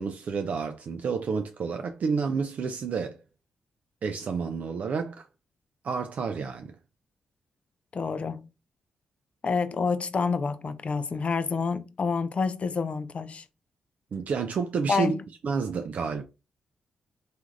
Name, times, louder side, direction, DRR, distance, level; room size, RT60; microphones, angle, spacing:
voice 1, 0.0-3.2 4.0-5.3 5.8-6.8 14.1-15.2 15.4-16.2, right 5 dB, 60° right, 0.3 m, -30 dB
voice 2, 7.9-8.5 9.4-13.4 14.9-15.2, left 5 dB, 45° left, 0.4 m, -28 dB
3.0 x 2.4 x 2.4 m
supercardioid pair, 55°, 3 cm